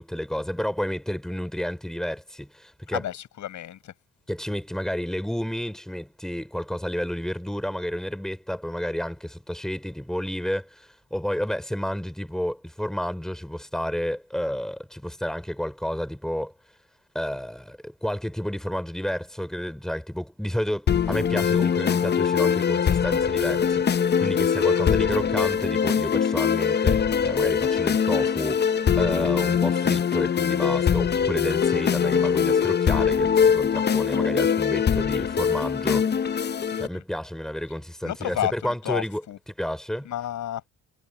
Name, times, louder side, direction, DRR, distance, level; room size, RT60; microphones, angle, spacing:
voice 1, 0.0-3.0 4.3-16.5 17.1-36.2 36.8-39.2 39.6-40.1, equal, ahead, 4.1 m, -31 dB
voice 2, 2.9-3.9 24.7-25.0 36.7-37.0 38.0-39.4 40.0-40.7, left 11 dB, 75° left, 7.5 m, -32 dB
sound 1, 20.9-36.9, left 7 dB, 35° left, 0.7 m, -22 dB
cardioid pair, 90°, 30 cm